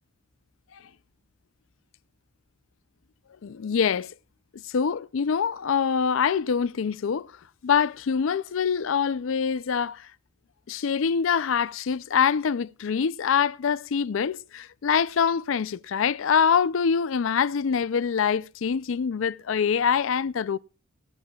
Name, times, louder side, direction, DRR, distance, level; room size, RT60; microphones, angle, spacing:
voice 1, 3.4-4.1 4.7-7.3 7.6-10.1 10.7-20.6, left 6 dB, 80° left, 0.4 m, -24 dB
16.0 x 13.5 x 2.3 m
head